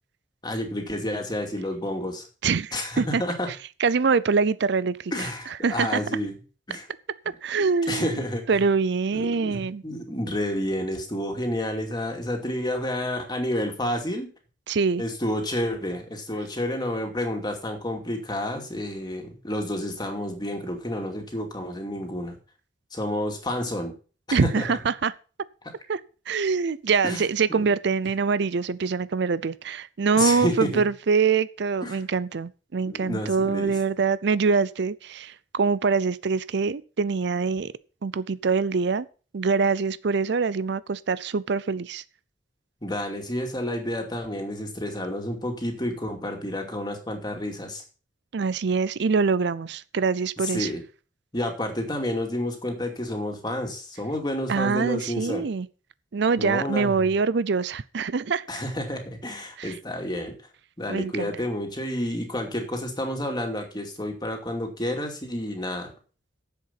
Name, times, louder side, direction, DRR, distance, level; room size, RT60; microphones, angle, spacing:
voice 1, 0.4-2.3 2.7-3.5 5.1-6.3 6.7-6.9 7.9-8.4 9.1-14.3 15.0-22.4 22.9-23.9 24.3-24.7 27.0-27.7 30.1-30.8 31.8-32.0 32.8-33.7 42.8-47.8 50.4-50.8 51.3-55.4 56.4-57.1 58.5-60.3 60.8-65.9, left 1 dB, 25° left, 2.5 m, -30 dB
voice 2, 2.4-3.2 3.8-5.3 5.6-6.0 7.4-9.8 14.7-15.0 24.3-25.1 25.9-26.0 26.3-37.7 38.0-39.1 39.3-42.0 48.3-50.7 54.5-55.7 56.1-58.4 59.6-59.8 60.9-61.3, right 5 dB, 65° right, 0.5 m, -24 dB
10.5 x 7.7 x 5.8 m
head